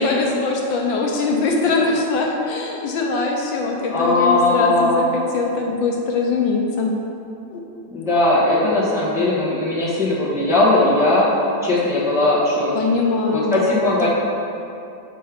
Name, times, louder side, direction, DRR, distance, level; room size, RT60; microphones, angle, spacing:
voice 1, 0.0-6.9 7.5-7.6 12.7-14.1, left 4 dB, 75° left, 0 dB, 1.4 m, -22 dB
voice 2, 3.9-5.2 7.9-11.3 11.6-12.9 13.3-14.1, left 2 dB, ahead, -9 dB, 1.2 m, -19 dB
7.6 x 5.5 x 3.6 m, 2.6 s
omnidirectional pair, 2.2 m